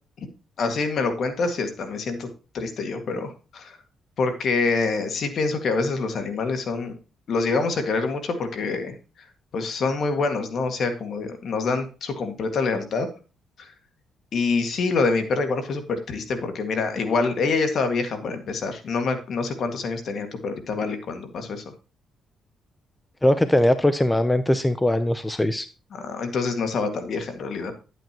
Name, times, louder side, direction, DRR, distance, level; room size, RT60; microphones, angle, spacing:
voice 1, 0.6-2.3 2.5-3.8 4.2-6.9 7.3-8.9 9.5-13.1 13.6-13.7 14.3-21.6 25.9-27.7, left 4 dB, 60° left, 7 dB, 1.9 m, -26 dB
voice 2, 23.2-25.7, left 1 dB, 10° left, 11 dB, 0.6 m, -20 dB
10.5 x 9.2 x 2.9 m, 0.33 s
cardioid pair, 90°, 0 cm